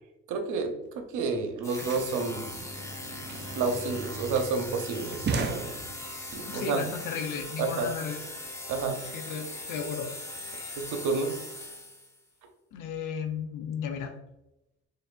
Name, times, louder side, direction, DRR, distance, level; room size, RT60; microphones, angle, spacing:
voice 1, 0.3-2.5 3.5-5.7 6.3-6.8 7.6-7.9 8.7-9.0 10.8-11.4, right 4 dB, 80° right, 5 dB, 0.7 m, -30 dB
sound 1, 0.9-1.0 1.1-6.3, right 4 dB, 35° right, 0.5 m, -37 dB
sound 2, 1.6-12.2, left 1 dB, 10° left, 0.8 m, -40 dB
voice 2, 6.5-8.3 9.0-10.1 12.7-14.1, left 6 dB, 85° left, 6 dB, 0.7 m, -35 dB
3.9 x 3.3 x 2.4 m, 0.90 s
cardioid pair, 90°, 30 cm